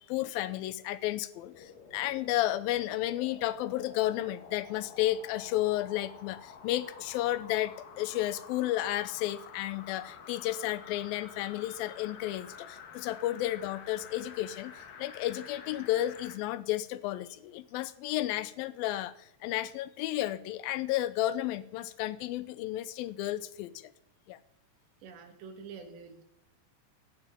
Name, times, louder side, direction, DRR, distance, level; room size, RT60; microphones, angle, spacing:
voice 1, 0.0-23.7 24.3-24.4, left 14 dB, 80° left, 15 dB, 2.1 m, -32 dB
sound 1, 1.4-16.4 16.9-17.0, left 6 dB, 60° left, 3.0 m, -49 dB
voice 2, 25.0-26.2, right 5 dB, 80° right, 6 dB, 4.0 m, -47 dB
17.0 x 7.4 x 8.6 m, 0.80 s
omnidirectional pair, 5.0 m